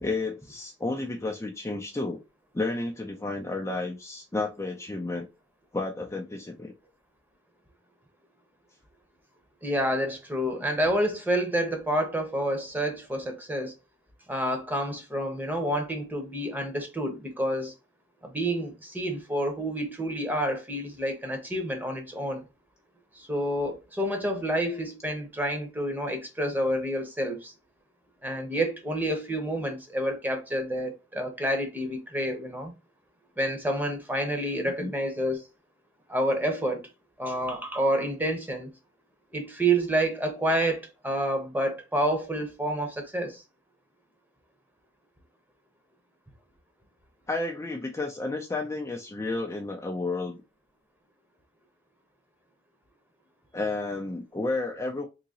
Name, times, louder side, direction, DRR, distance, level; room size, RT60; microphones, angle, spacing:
voice 1, 0.0-2.2 2.5-5.3 5.7-6.7 34.8-34.9 47.3-50.4 53.5-55.1, left 2 dB, 15° left, 0.5 m, -31 dB
voice 2, 9.6-13.7 14.3-17.7 18.2-22.4 23.1-27.5 28.2-32.7 33.4-35.5 36.1-36.9 37.2-38.7 39.3-43.4, right 1 dB, 10° right, 1.0 m, -29 dB
3.8 x 2.9 x 2.8 m
head